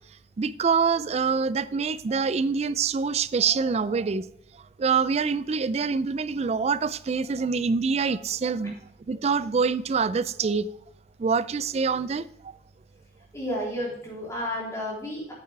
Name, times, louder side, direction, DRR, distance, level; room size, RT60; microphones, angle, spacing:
voice 1, 0.4-4.3 4.8-8.7 9.1-10.7 11.2-12.3, right 5 dB, 35° right, 0.3 m, -25 dB
voice 2, 13.3-15.3, equal, 15° left, 3.7 m, -31 dB
9.2 x 7.2 x 3.3 m
head